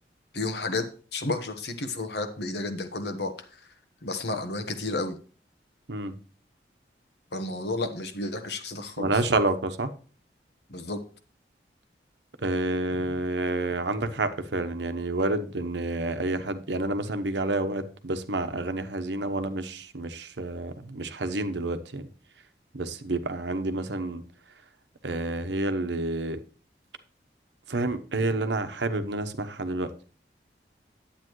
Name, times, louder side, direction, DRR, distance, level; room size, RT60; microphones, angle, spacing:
voice 1, 0.3-0.9 1.1-3.3 4.0-5.2 7.3-9.1 10.7-11.0, left 2 dB, 70° left, 1.3 m, -31 dB
voice 2, 9.0-9.9 12.4-22.1 22.7-24.2 25.0-26.4 27.7-29.9, right 2 dB, 85° right, 1.0 m, -29 dB
10.0 x 8.6 x 3.1 m
head